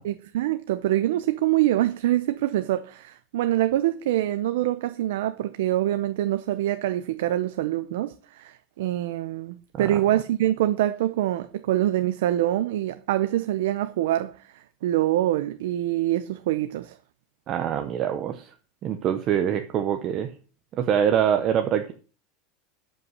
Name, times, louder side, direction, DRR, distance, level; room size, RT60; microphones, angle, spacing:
voice 1, 0.0-17.0, right 13 dB, 85° right, 0.7 m, -25 dB
voice 2, 17.5-18.5 18.8-20.3 20.7-21.9, right 9 dB, 30° right, 0.8 m, -24 dB
12.5 x 5.7 x 6.4 m
supercardioid pair, 175°, 0 cm